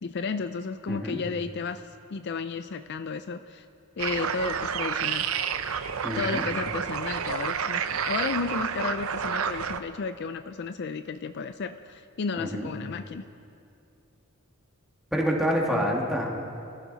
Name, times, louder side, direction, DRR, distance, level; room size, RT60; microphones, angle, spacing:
voice 1, 0.0-3.7 4.0-5.3 6.1-13.2, left 4 dB, 50° left, 10 dB, 0.4 m, -33 dB
voice 2, 0.9-1.2 6.0-6.5 12.4-12.7 15.1-16.4, equal, ahead, -1 dB, 1.9 m, -27 dB
sound 1, 4.0-9.8, right 7 dB, 80° right, 0.6 m, -30 dB
23.5 x 14.0 x 4.1 m, 2.6 s
head